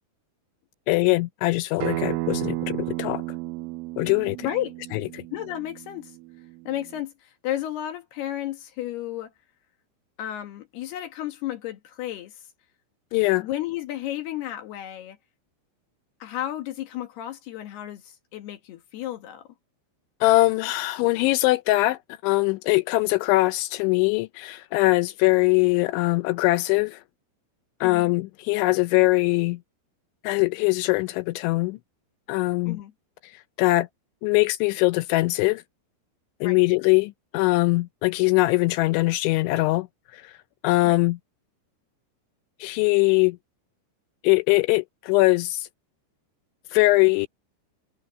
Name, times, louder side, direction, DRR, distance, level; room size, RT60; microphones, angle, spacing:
voice 1, 0.9-3.2 4.0-4.5 4.9-5.2 13.1-13.5 20.2-27.0 27.8-29.6 30.2-31.8 32.3-32.8 33.2-33.3 33.6-33.9 34.2-35.6 36.4-39.9 40.1-40.3 40.6-41.2 42.6-43.4 44.2-45.7 46.7-47.3, left 21 dB, 85° left, 2.7 m, -22 dB
Acoustic guitar, 1.8-7.0, right 21 dB, 80° right, 3.0 m, -33 dB
voice 2, 4.4-4.7 5.3-6.2 6.7-9.3 10.2-12.4 13.4-15.2 16.2-19.5 27.8-28.1 32.7-32.9 36.4-36.6 40.8-41.0, left 13 dB, 65° left, 3.0 m, -33 dB
omnidirectional pair, 5.8 m